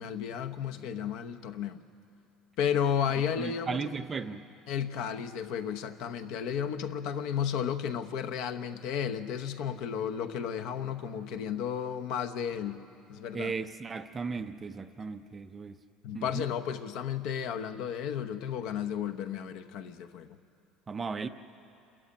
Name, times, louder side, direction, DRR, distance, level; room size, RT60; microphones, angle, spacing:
voice 1, 0.0-1.8 2.6-3.8 4.7-12.8 13.1-13.5 16.0-20.4, left 8 dB, 55° left, 8 dB, 0.9 m, -33 dB
voice 2, 3.4-4.5 13.3-15.8 16.1-16.5 20.9-21.3, right 5 dB, 15° right, 9 dB, 0.5 m, -36 dB
28.0 x 14.0 x 8.8 m, 2.7 s
cardioid pair, 175°, 0 cm